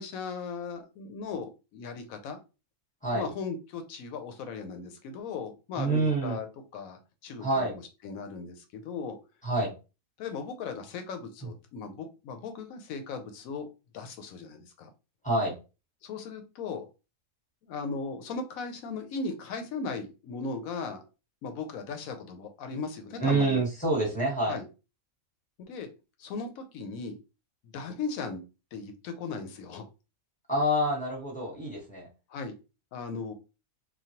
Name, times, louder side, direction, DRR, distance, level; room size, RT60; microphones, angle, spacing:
voice 1, 0.0-2.4 3.1-6.5 6.7-9.2 10.2-13.7 13.9-14.9 16.0-16.8 17.6-21.0 21.4-23.6 24.5-24.7 25.6-25.9 26.2-27.2 27.6-28.4 28.7-29.8 32.3-32.5 32.9-33.3, left 4 dB, 80° left, 6 dB, 1.0 m, -37 dB
voice 2, 5.8-6.4 7.4-7.7 9.4-9.7 15.2-15.6 23.2-24.6 30.5-32.1, right 1 dB, 5° left, -3 dB, 0.9 m, -27 dB
3.1 x 2.2 x 2.8 m, 0.30 s
omnidirectional pair, 1.5 m